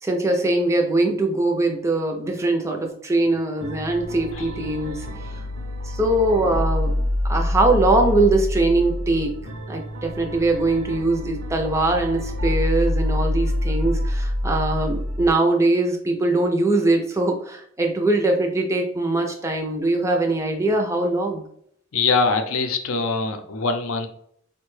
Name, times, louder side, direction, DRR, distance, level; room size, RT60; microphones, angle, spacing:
voice 1, 0.0-5.4 5.8-7.0 7.2-21.5, right 2 dB, 15° right, 2 dB, 0.4 m, -22 dB
sound 1, 3.6-15.3, left 1 dB, 60° right, 0.6 m, -26 dB
voice 2, 4.3-4.7 5.3-5.5 21.9-24.1, left 4 dB, 70° left, 7 dB, 0.5 m, -24 dB
4.5 x 2.2 x 3.1 m, 0.68 s
head